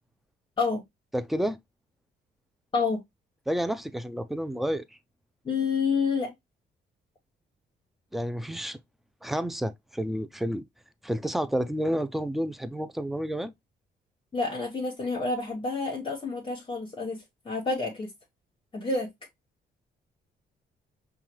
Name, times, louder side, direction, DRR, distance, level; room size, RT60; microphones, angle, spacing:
voice 1, 1.1-1.6 3.5-4.9 8.1-8.8 9.2-10.6 11.0-13.5, equal, ahead, 0.3 m, -30 dB
voice 2, 5.4-6.3 14.3-18.1 18.7-19.1, left 4 dB, 30° left, 1.1 m, -28 dB
5.5 x 2.3 x 2.9 m
cardioid pair, 115°, 18 cm